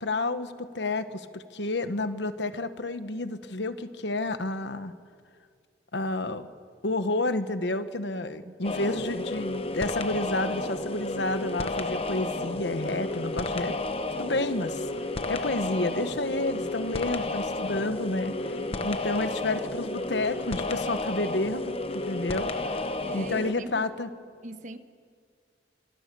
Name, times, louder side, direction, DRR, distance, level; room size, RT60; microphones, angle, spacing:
voice 1, 0.0-4.9 5.9-6.5 6.8-13.7 14.2-14.9 15.3-18.6 18.8-24.1, left 2 dB, 85° left, 1.2 m, -30 dB
voice 2, 8.1-8.6 16.4-16.7 18.6-19.0 23.0-23.9 24.4-24.8, right 2 dB, 45° right, 1.2 m, -41 dB
sound 1, 8.6-23.5, left 2 dB, 35° left, 1.0 m, -32 dB
25.5 x 25.0 x 6.9 m
head